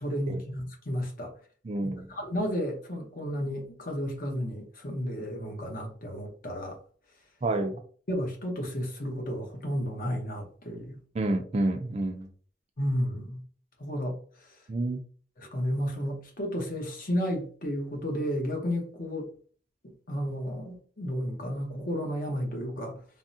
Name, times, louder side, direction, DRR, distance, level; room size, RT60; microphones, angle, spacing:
voice 1, 0.0-1.3 1.8-6.8 8.1-11.0 12.8-13.4 13.8-14.1 15.4-19.3 19.8-23.0, equal, 50° left, 0.8 m, -32 dB
voice 2, 1.6-2.0 7.4-7.8 11.1-12.3 14.7-15.0, right 2 dB, 35° right, 0.4 m, -29 dB
3.5 x 2.1 x 2.6 m
head